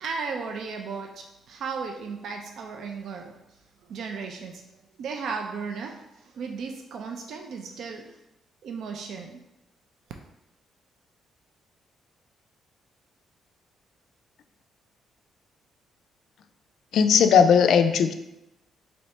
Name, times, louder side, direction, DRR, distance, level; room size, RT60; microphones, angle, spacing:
voice 1, 0.0-3.3 3.9-4.6 5.0-6.0 6.3-8.1 8.6-9.4, right 5 dB, 70° right, 2 dB, 0.3 m, -35 dB
voice 2, 16.9-18.1, left 7 dB, 70° left, 8 dB, 0.3 m, -18 dB
3.2 x 2.7 x 4.1 m, 0.90 s
cardioid pair, 90°, 0 cm